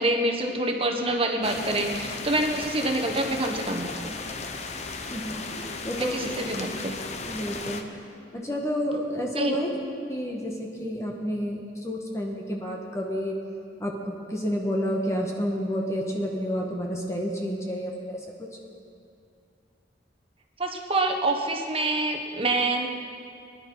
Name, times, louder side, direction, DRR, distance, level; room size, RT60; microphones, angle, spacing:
voice 1, 0.0-4.1 6.0-7.0 9.4-9.6 20.6-22.9, right 2 dB, 30° right, 3 dB, 1.3 m, -26 dB
sound 1, 1.4-7.8, left 3 dB, 35° left, 0.9 m, -35 dB
voice 2, 5.1-6.3 7.2-8.1 8.3-9.7 10.1-13.3 13.8-18.2, equal, 15° left, -1 dB, 1.3 m, -30 dB
23.0 x 11.0 x 4.8 m, 2.4 s
head